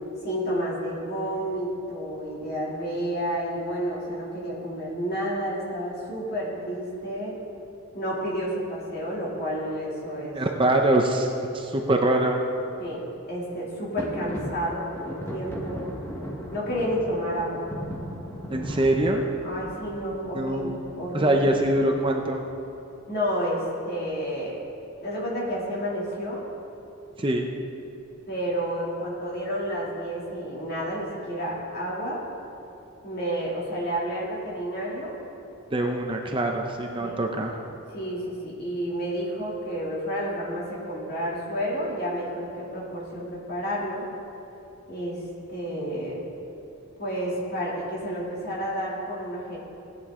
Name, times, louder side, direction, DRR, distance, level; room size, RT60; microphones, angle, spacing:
voice 1, 0.2-7.4 7.9-10.4 12.8-15.9 16.5-17.6 19.4-21.5 23.1-24.6 25.0-26.4 28.3-32.2 33.0-35.2 37.0-37.2 37.9-44.0 44.9-46.2 47.0-49.6, equal, 45° left, -5 dB, 2.7 m, -30 dB
voice 2, 10.3-12.4 18.5-19.3 20.3-20.8 21.1-22.4 27.2-27.5 35.7-37.5, right 1 dB, 25° right, 2 dB, 0.6 m, -24 dB
sound 1, 14.0-22.5, equal, 10° left, 1.2 m, -38 dB
17.0 x 9.4 x 3.7 m, 2.8 s
head